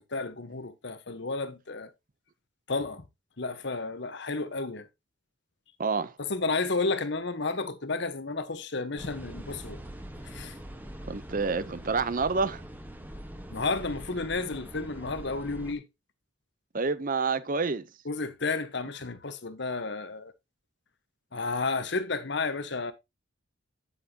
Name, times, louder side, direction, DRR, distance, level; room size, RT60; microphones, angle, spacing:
voice 1, 0.0-1.9 2.7-3.0 3.4-4.9 6.2-9.8 10.2-10.6 13.5-15.9 18.0-20.3 21.3-22.9, left 3 dB, 60° left, 1.1 m, -32 dB
voice 2, 5.8-6.1 11.0-12.6 16.7-17.8, right 4 dB, 45° right, 0.7 m, -28 dB
sound 1, 9.0-15.7, right 1 dB, 10° right, 1.2 m, -43 dB
9.2 x 8.3 x 2.8 m
head